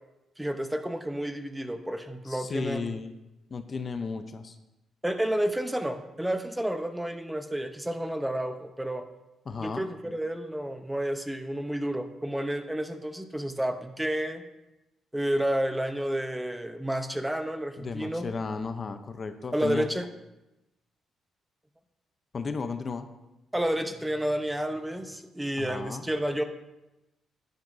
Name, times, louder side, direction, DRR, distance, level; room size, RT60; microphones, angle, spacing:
voice 1, 0.4-2.9 5.0-9.0 9.6-14.4 15.1-18.3 19.5-20.0 23.5-26.4, right 1 dB, 5° right, 8 dB, 0.7 m, -30 dB
voice 2, 2.2-3.1 3.5-4.6 9.5-9.9 17.8-19.9 22.3-23.1 25.6-26.1, left 4 dB, 40° left, 9 dB, 0.6 m, -34 dB
11.0 x 10.0 x 2.6 m, 0.98 s
cardioid pair, 90°, 0 cm